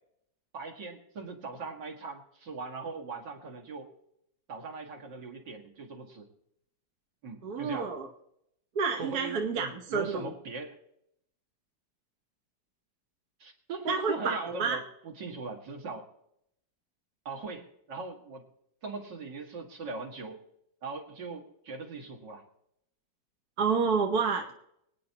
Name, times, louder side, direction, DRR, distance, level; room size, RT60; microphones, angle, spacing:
voice 1, 0.5-3.9 4.5-6.3 7.2-7.9 9.0-10.8 13.4-16.1 17.3-18.4 18.8-20.4 20.8-22.4, right 4 dB, 75° right, 1 dB, 2.5 m, -40 dB
voice 2, 7.4-8.1 8.7-10.3 13.9-14.8 23.6-24.5, right 5 dB, 60° right, 2 dB, 1.5 m, -29 dB
24.0 x 9.4 x 2.9 m, 0.75 s
omnidirectional pair, 1.9 m